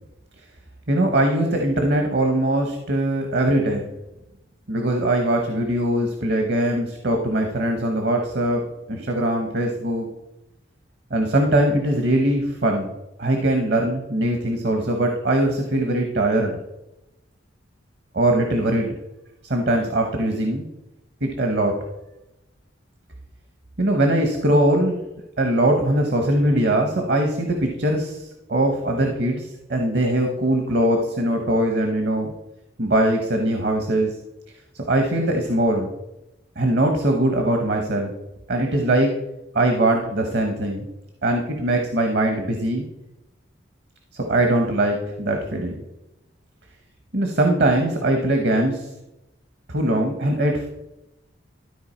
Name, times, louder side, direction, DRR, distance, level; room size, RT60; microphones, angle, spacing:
voice 1, 0.9-3.9 4.7-8.6 8.9-10.1 11.1-12.9 13.2-16.6 18.1-18.9 19.4-20.6 21.2-21.8 23.8-25.0 25.4-32.3 32.8-34.2 34.7-35.9 36.6-38.1 38.5-39.1 39.5-40.9 41.2-42.8 44.1-45.8 47.1-48.9 49.7-50.7, right 1 dB, 55° right, 3 dB, 1.0 m, -21 dB
12.5 x 4.5 x 4.3 m, 0.92 s
head